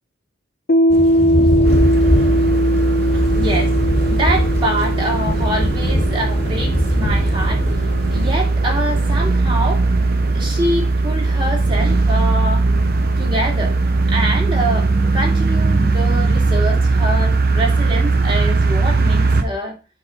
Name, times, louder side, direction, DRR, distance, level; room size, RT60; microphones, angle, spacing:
Piano, 0.7-7.9, equal, 50° left, 0.6 m, -20 dB
Thunder / Rain, 0.9-8.3, equal, 30° left, 1.3 m, -22 dB
sound 1, 1.6-19.4, right 3 dB, 50° right, 0.7 m, -18 dB
voice 1, 3.1-12.7 13.2-13.8 14.1-19.8, right 1 dB, 25° right, 2.4 m, -25 dB
7.6 x 3.8 x 5.1 m
head